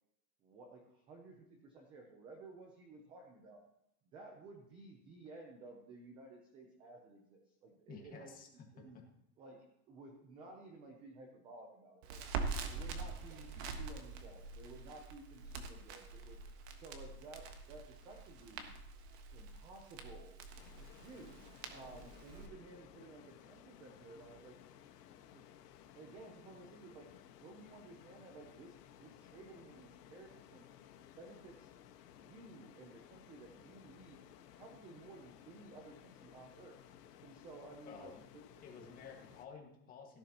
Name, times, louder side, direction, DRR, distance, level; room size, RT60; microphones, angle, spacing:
voice 1, 0.4-3.6 4.1-8.3 8.7-9.0 9.4-12.2 12.6-13.5 13.8-16.4 16.7-18.7 19.3-20.4 20.9-21.4 21.7-24.6 25.3-25.5 25.9-27.1 27.4-30.7 31.1-31.7 32.1-34.2 34.5-36.8 37.2-38.6, right 2 dB, 10° right, 2 dB, 0.5 m, -55 dB
voice 2, 7.9-8.7 37.9-38.3 38.6-40.2, left 5 dB, 20° left, 1 dB, 1.7 m, -52 dB
Crackle, 12.0-22.5, right 4 dB, 45° right, 1.4 m, -45 dB
sound 1, 20.6-39.5, left 10 dB, 85° left, 1.5 m, -59 dB
17.0 x 10.5 x 2.9 m, 0.81 s
supercardioid pair, 170°, 46 cm